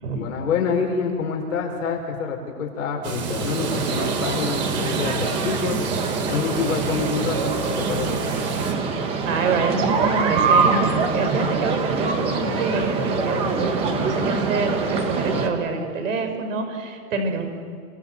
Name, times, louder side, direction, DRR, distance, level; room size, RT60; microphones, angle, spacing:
voice 1, 0.2-5.8 6.3-7.5 7.8-8.1, left 5 dB, 55° left, 1 dB, 5.5 m, -26 dB
sound 1, 3.0-8.7, right 5 dB, 85° right, 5.7 m, -31 dB
sound 2, 3.4-15.5, right 4 dB, 10° right, 1.2 m, -24 dB
voice 2, 9.2-17.4, right 4 dB, 55° right, 6 dB, 5.7 m, -26 dB
29.5 x 25.0 x 7.7 m, 2.1 s
hypercardioid pair, 170°, 46 cm